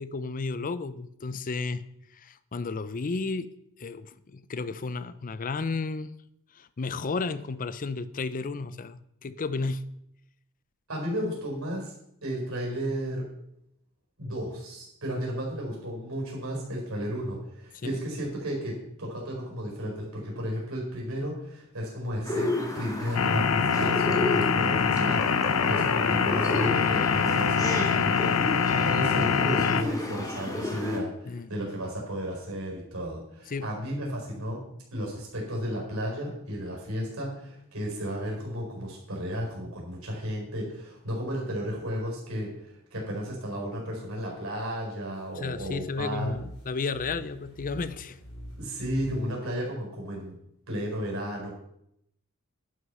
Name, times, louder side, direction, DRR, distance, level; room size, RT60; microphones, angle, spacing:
voice 1, 0.0-1.8 2.1-3.5 3.8-6.1 6.5-9.8 17.7-18.0 31.3-31.5 33.5-33.7 45.3-48.2, left 4 dB, 40° left, 14 dB, 0.5 m, -33 dB
voice 2, 10.9-11.9 12.2-13.3 14.2-34.6 34.9-46.3 48.6-50.3 50.7-51.5, equal, 70° right, -2 dB, 4.5 m, -33 dB
sound 1, 22.2-31.0, left 2 dB, 15° left, 1.7 m, -32 dB
sound 2, 23.1-29.8, left 6 dB, 80° left, 0.7 m, -24 dB
sound 3, 45.4-49.3, equal, 65° left, 4.2 m, -46 dB
11.0 x 6.6 x 5.5 m, 0.77 s
head